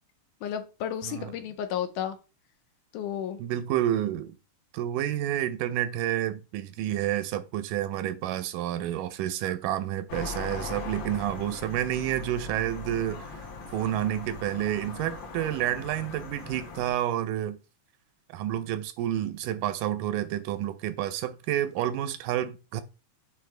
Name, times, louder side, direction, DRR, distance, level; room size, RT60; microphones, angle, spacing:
voice 1, 0.4-2.2 2.9-3.4, left 9 dB, 80° left, 2.1 m, -32 dB
voice 2, 3.4-4.3 4.7-17.6 18.3-22.8, right 12 dB, 80° right, 2.1 m, -29 dB
City Night - Traffic crickets dogs barking people, 10.1-16.9, left 4 dB, 65° left, 2.9 m, -40 dB
8.4 x 3.8 x 3.2 m
omnidirectional pair, 3.8 m